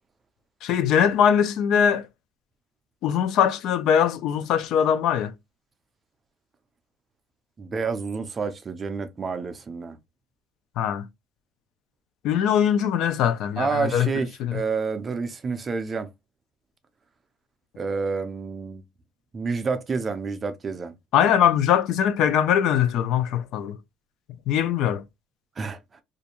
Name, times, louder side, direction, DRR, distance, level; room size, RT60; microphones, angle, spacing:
voice 1, 0.6-2.1 3.0-5.3 10.8-11.1 12.2-14.1 14.4-14.6 21.1-23.8 24.5-25.0, left 9 dB, 60° left, 0.3 m, -21 dB
voice 2, 7.6-10.0 13.6-16.1 17.8-18.8 19.3-20.9 25.6-25.8, right 4 dB, 25° right, 0.4 m, -29 dB
2.5 x 2.2 x 2.8 m
cardioid pair, 145°, 0 cm